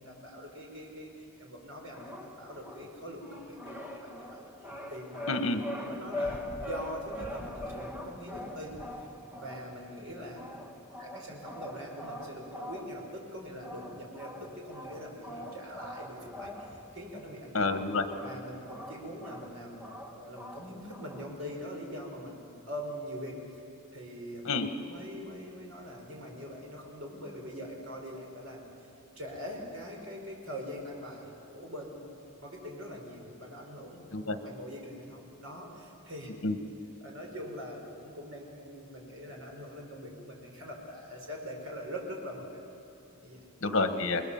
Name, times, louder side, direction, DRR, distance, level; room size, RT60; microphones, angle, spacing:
voice 1, 0.0-5.2 5.8-8.8 9.3-10.4 11.0-17.5 18.2-19.8 20.1-23.4 23.9-24.4 24.9-28.7 29.2-32.1 32.4-34.0 34.4-36.3 37.0-42.6 43.1-43.4, equal, 75° right, 0 dB, 5.5 m, -43 dB
sound 1, 1.9-21.3, left 1 dB, 10° right, 1.6 m, -43 dB
voice 2, 5.3-5.6 17.5-18.0 24.4-24.7 34.1-34.4 36.4-36.6 43.6-44.2, left 3 dB, 65° left, 7 dB, 1.6 m, -28 dB
28.0 x 21.0 x 7.3 m, 2.6 s
head